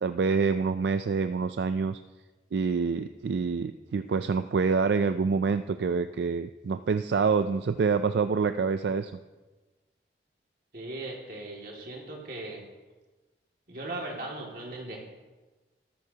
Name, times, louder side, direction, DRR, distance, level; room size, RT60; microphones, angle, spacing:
voice 1, 0.0-2.0 2.5-9.1, right 5 dB, 75° right, 10 dB, 0.4 m, -26 dB
voice 2, 10.7-12.6 13.7-15.1, right 2 dB, 50° right, -1 dB, 2.3 m, -38 dB
13.5 x 13.0 x 2.9 m, 1.2 s
head